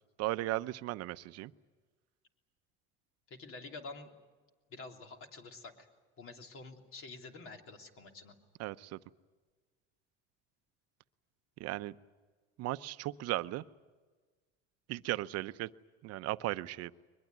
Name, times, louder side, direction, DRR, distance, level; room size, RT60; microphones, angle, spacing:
voice 1, 0.2-1.5 8.6-9.0 11.6-11.9 12.6-13.6 14.9-15.7 16.0-16.9, right 17 dB, 60° right, 13 dB, 0.8 m, -36 dB
voice 2, 3.3-4.1 4.7-5.9 6.2-8.3, left 3 dB, 45° left, 4 dB, 3.3 m, -48 dB
22.5 x 21.0 x 9.5 m, 1.4 s
cardioid pair, 120°, 29 cm